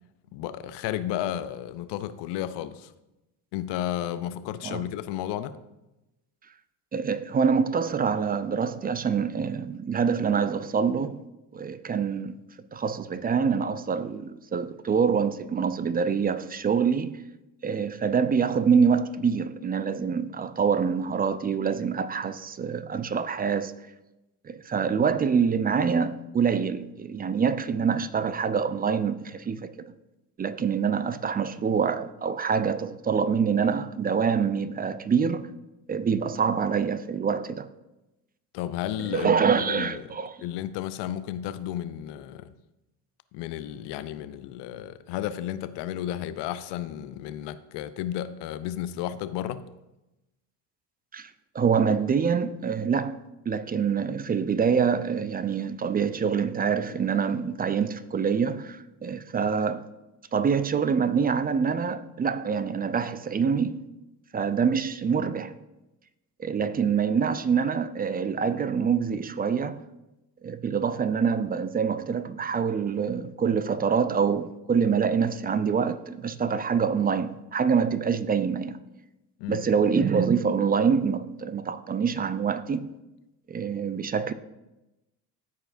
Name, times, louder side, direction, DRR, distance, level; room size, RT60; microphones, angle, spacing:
voice 1, 0.3-2.9 3.5-5.5 38.5-42.5 43.3-49.6 79.4-79.6, left 11 dB, 65° left, 0.6 m, -33 dB
voice 2, 6.9-11.2 11.5-12.4 12.7-17.2 17.6-23.7 24.4-29.7 30.4-35.5 35.9-37.7 39.0-40.3 51.1-51.3 51.5-53.2 53.5-59.9 60.3-63.8 64.3-65.5 66.4-69.8 70.4-78.8 79.5-82.9 83.5-84.3, right 6 dB, 20° right, 0.4 m, -25 dB
13.0 x 4.8 x 2.6 m
hypercardioid pair, 60°, 45 cm